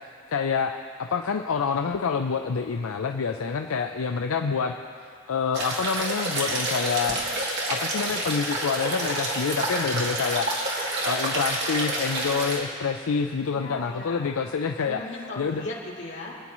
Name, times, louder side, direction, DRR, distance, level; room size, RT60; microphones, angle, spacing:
voice 1, 0.3-0.7 1.0-4.8 5.3-7.2 7.7-10.8 11.0-15.0 15.4-15.7, left 5 dB, 80° left, 4 dB, 0.5 m, -27 dB
sound 1, 5.5-12.6, right 1 dB, 55° right, 2.2 m, -28 dB
voice 2, 13.5-14.4 14.8-16.4, left 2 dB, 60° left, -6 dB, 2.7 m, -37 dB
25.5 x 9.6 x 3.1 m, 2.4 s
head